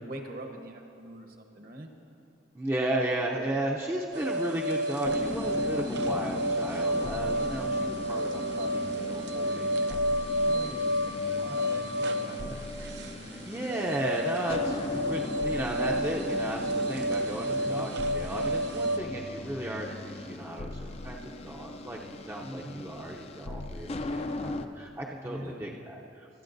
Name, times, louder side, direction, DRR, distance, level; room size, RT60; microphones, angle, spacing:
voice 1, 0.0-1.9 5.9-6.2 10.4-12.7 13.0-13.5 17.4-17.9 22.4-22.9 25.2-25.7, right 1 dB, 50° right, 3 dB, 1.0 m, -43 dB
voice 2, 2.5-10.7 11.3-11.7 13.3-26.3, right 1 dB, 15° right, -2 dB, 0.6 m, -35 dB
sound 1, 4.1-19.0, equal, 65° right, 0.6 m, -30 dB
sound 2, 5.0-24.7, left 2 dB, 35° left, 0.4 m, -38 dB
25.0 x 8.7 x 2.6 m, 2.7 s
head